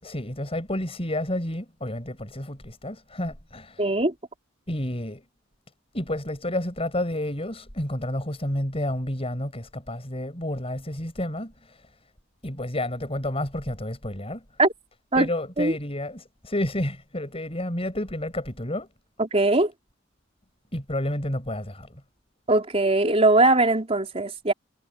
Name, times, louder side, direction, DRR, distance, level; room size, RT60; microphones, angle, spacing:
voice 1, 0.0-3.9 4.7-5.2 5.9-11.9 12.4-14.4 15.2-18.9 20.7-22.0, left 1 dB, 30° left, 7.2 m, -30 dB
voice 2, 3.8-4.1 14.6-14.7 15.1-15.3 15.6-15.7 19.2-19.7 22.5-24.5, right 2 dB, 30° right, 3.9 m, -20 dB
head